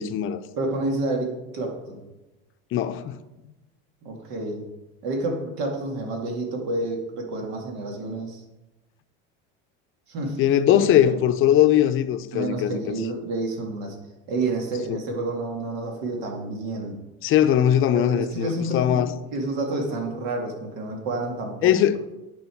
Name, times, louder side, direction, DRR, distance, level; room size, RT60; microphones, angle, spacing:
voice 1, 0.0-0.4 2.7-3.2 10.4-12.8 14.9-15.0 17.2-19.1 21.6-22.0, left 11 dB, 45° left, 0.7 m, -20 dB
voice 2, 0.6-2.0 4.0-4.6 5.0-8.4 10.1-10.4 10.7-11.2 12.3-14.0 14.3-17.0 17.9-19.0 19.3-22.0, right 2 dB, 70° right, 2.3 m, -29 dB
9.7 x 5.7 x 4.5 m
supercardioid pair, 120°, 29 cm